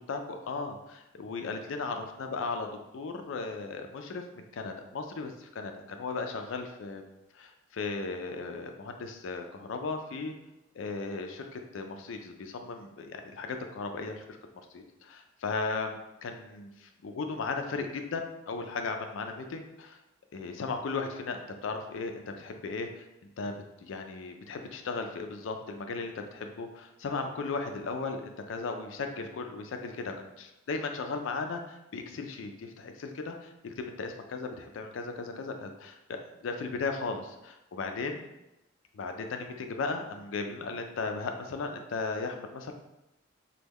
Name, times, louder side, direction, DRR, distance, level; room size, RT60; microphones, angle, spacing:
voice 1, 0.0-7.1 7.3-10.3 10.7-14.2 14.7-20.0 20.3-23.0 23.4-38.2 38.9-42.7, left 4 dB, 70° left, 5 dB, 0.4 m, -36 dB
3.1 x 2.2 x 3.5 m, 0.93 s
head